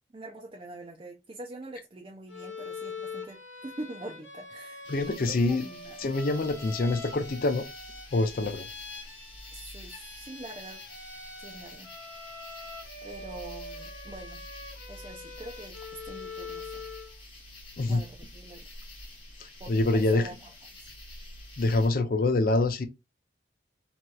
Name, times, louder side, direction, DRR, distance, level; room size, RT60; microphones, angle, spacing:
voice 1, 0.1-6.0 9.5-10.8 11.4-11.9 13.0-14.4 14.9-15.8 16.0-16.8 17.9-18.6 19.6-20.5, right 2 dB, 25° right, 0.4 m, -44 dB
Bowed string instrument, 2.3-17.2, left 3 dB, 90° left, 1.0 m, -44 dB
sound 1, 4.8-21.9, left 1 dB, 30° left, 1.1 m, -48 dB
voice 2, 4.9-5.6 6.0-7.6 8.1-8.7 17.8-18.0 19.7-20.3 21.6-22.9, left 2 dB, 50° left, 0.4 m, -25 dB
3.0 x 2.8 x 2.2 m
head